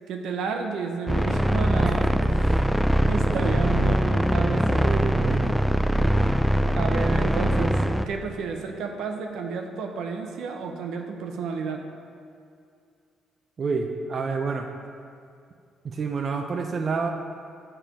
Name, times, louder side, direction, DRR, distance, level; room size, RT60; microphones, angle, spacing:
voice 1, 0.1-2.2 2.9-4.8 6.8-11.8, right 5 dB, 85° right, 3 dB, 0.8 m, -31 dB
sound 1, 1.1-8.1, right 1 dB, ahead, 0.3 m, -22 dB
voice 2, 3.2-3.7 4.8-5.6 13.6-14.7 15.8-17.1, right 4 dB, 45° right, 4 dB, 0.6 m, -29 dB
9.1 x 4.4 x 5.1 m, 2.3 s
cardioid pair, 90°, 0 cm